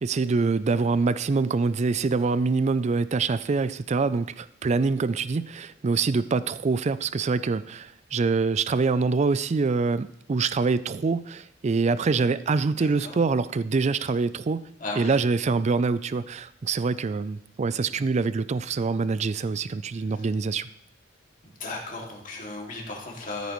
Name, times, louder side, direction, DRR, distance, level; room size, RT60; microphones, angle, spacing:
voice 1, 0.0-14.7 15.0-20.7, right 4 dB, 35° right, 16 dB, 0.4 m, -25 dB
voice 2, 12.8-13.2 14.8-15.2 21.6-23.5, left 2 dB, 45° left, -2 dB, 2.3 m, -35 dB
13.5 x 8.3 x 3.1 m, 0.71 s
head